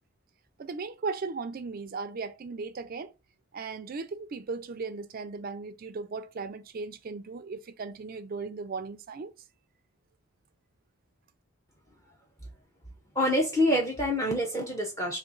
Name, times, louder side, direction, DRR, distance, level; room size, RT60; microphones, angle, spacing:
voice 1, 0.6-3.1 3.5-9.3, right 4 dB, 40° right, 0.4 m, -37 dB
voice 2, 13.1-15.2, left 1 dB, 15° left, 0.6 m, -26 dB
3.0 x 2.7 x 3.8 m
head